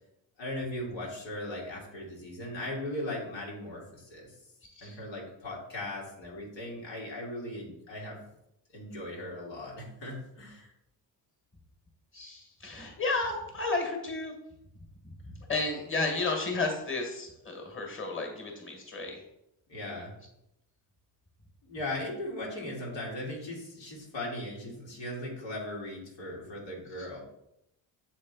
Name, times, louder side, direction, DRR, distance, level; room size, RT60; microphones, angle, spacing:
voice 1, 0.4-4.3 4.8-8.2 8.7-10.7 19.7-20.1 21.6-27.2, left 1 dB, 90° left, -3 dB, 2.1 m, -38 dB
voice 2, 12.1-14.3 15.5-19.2, left 3 dB, 25° left, 2 dB, 1.7 m, -32 dB
7.2 x 3.7 x 4.0 m, 0.82 s
cardioid pair, 85°, 44 cm